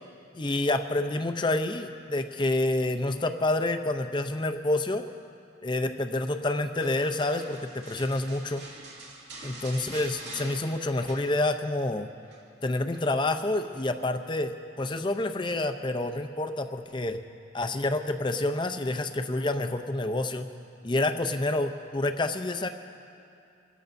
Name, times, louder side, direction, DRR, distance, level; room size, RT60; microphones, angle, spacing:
voice 1, 0.3-5.0 5.6-8.7 9.4-12.1 12.6-17.2 17.5-20.5 20.8-22.7, left 2 dB, 25° left, 7 dB, 0.6 m, -28 dB
sound 1, 6.8-11.8 12.1-12.4 12.9-13.9 15.0-15.5 16.0-16.2, right 2 dB, 70° right, 2.1 m, -46 dB
27.5 x 13.5 x 2.6 m, 2.5 s
head